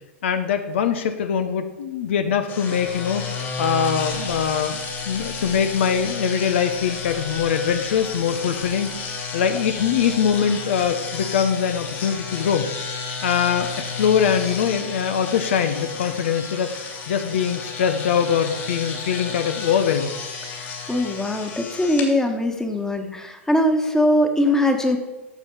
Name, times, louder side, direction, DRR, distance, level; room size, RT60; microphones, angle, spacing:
voice 1, 0.2-3.2 3.6-4.8 5.1-12.7 13.2-16.7 17.1-20.1, left 7 dB, 65° left, 8 dB, 0.9 m, -22 dB
sound 1, 2.5-22.1, left 4 dB, 35° left, 2.8 m, -32 dB
voice 2, 20.5-25.0, left 1 dB, 5° left, 5 dB, 1.5 m, -21 dB
12.0 x 7.0 x 5.8 m, 1.1 s
figure-of-eight pair, 100°, 7 cm